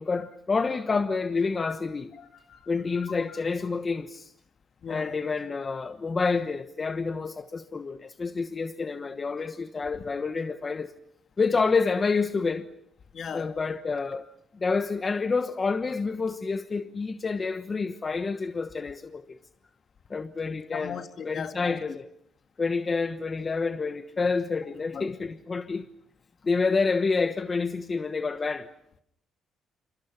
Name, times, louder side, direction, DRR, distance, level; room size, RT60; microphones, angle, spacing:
voice 1, 0.0-2.1 2.7-4.3 4.9-10.9 11.4-12.7 13.3-14.2 14.5-19.4 20.1-21.0 21.2-22.1 22.6-25.9 26.4-28.7, left 4 dB, 35° left, 1.1 m, -28 dB
voice 2, 2.2-2.7 3.0-3.4 4.8-5.2 9.9-10.0 13.1-13.5 20.7-22.0 24.9-25.1, left 7 dB, 55° left, 2.0 m, -38 dB
28.0 x 26.0 x 5.9 m
cardioid pair, 90°, 0 cm